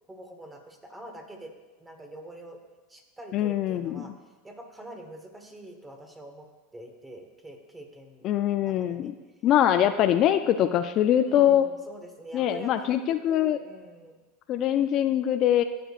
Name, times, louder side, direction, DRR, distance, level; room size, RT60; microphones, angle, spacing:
voice 1, 0.1-1.5 1.8-2.6 2.9-4.1 4.4-6.5 6.7-9.1 11.2-13.0 13.3-14.2, right 1 dB, 10° right, 4 dB, 1.2 m, -45 dB
voice 2, 3.3-4.0 8.2-9.1 9.4-11.6 12.3-13.6 14.5-15.6, left 11 dB, 45° left, 9 dB, 0.3 m, -23 dB
14.5 x 6.6 x 2.5 m, 1.2 s
supercardioid pair, 110°, 0 cm